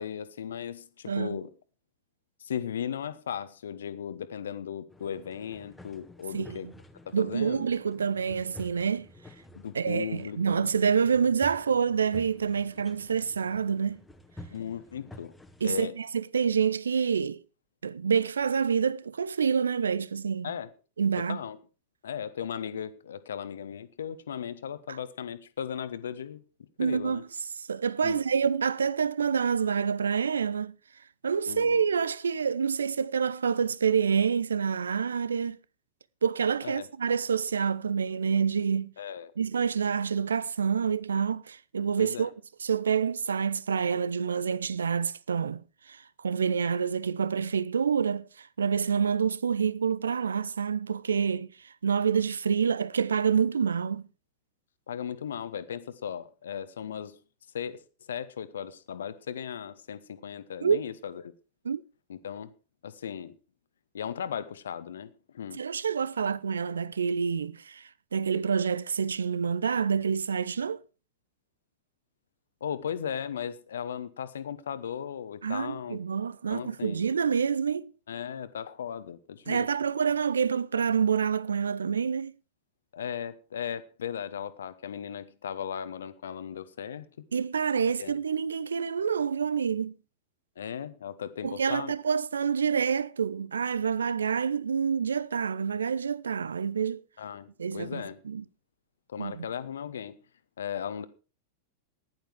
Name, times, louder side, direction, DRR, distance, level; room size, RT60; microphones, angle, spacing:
voice 1, 0.0-1.5 2.4-6.7 7.0-7.7 9.5-10.7 14.5-15.3 15.6-15.9 20.4-20.7 21.3-21.6 22.0-26.4 26.8-27.2 28.0-28.2 31.5-31.8 36.6-36.9 39.0-39.3 42.0-42.3 54.9-57.1 57.5-57.8 58.1-61.2 62.1-62.5 62.8-63.4 63.9-65.6 66.2-66.3 72.6-76.0 76.5-77.1 78.1-79.7 82.9-87.1 88.0-88.1 90.6-91.9 97.2-98.2 99.1-100.1 100.6-101.1, left 8 dB, 65° left, 1.1 m, -37 dB
voice 2, 1.1-1.4 6.3-6.7 7.1-9.1 9.7-14.0 15.6-17.4 17.8-20.5 21.0-21.4 24.9-25.0 26.8-27.3 27.6-30.8 31.2-35.6 36.2-38.9 39.4-42.3 42.6-54.0 60.6-60.8 61.6-61.8 65.5-70.8 75.4-77.9 79.5-82.3 87.3-90.0 91.4-97.0 97.6-98.4 99.2-99.5, right 6 dB, 70° right, 0.6 m, -27 dB
sound 1, 4.9-15.9, left 1 dB, 5° left, 1.8 m, -51 dB
15.0 x 11.0 x 4.8 m
figure-of-eight pair, 90°, 0 cm